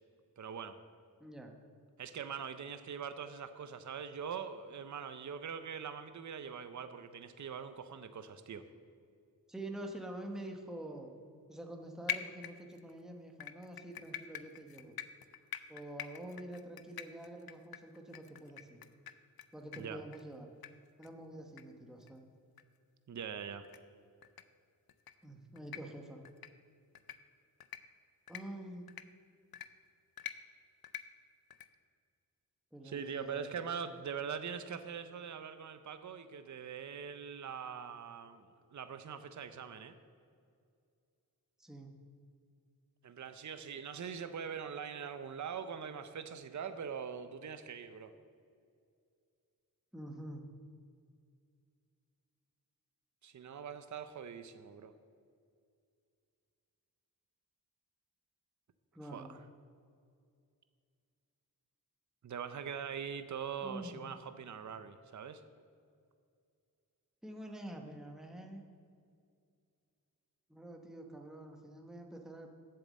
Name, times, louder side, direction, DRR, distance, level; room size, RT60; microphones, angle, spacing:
voice 1, 0.4-0.8 2.0-8.7 19.8-20.0 23.1-23.7 32.8-39.9 43.0-48.1 53.2-54.9 59.0-59.4 62.2-65.4, right 7 dB, 55° right, 10 dB, 0.6 m, -43 dB
voice 2, 1.2-1.5 9.5-11.1 11.5-14.9 15.7-18.8 19.5-20.5 21.0-22.2 25.2-26.2 28.3-28.9 32.7-33.6 41.6-41.9 49.9-50.5 58.9-59.3 63.6-64.1 67.2-68.6 70.5-72.5, right 1 dB, ahead, 2 dB, 0.9 m, -47 dB
sound 1, 12.1-12.9 13.4-19.4 19.7-19.8 20.1-20.2 20.6-20.7 21.0-21.1 21.6-21.7 22.0-22.1 22.6-22.7 23.6-23.8 24.2-24.4 24.9-25.1 25.6-25.8 26.3-26.5 27.0-27.2 27.6-27.8 28.3-28.4 28.9-29.0 29.5-29.7 30.2-30.3 30.8-31.0 31.5-31.7, left 10 dB, 80° left, 0.5 m, -43 dB
8.0 x 6.7 x 7.4 m, 2.3 s
wide cardioid pair, 105°, 36 cm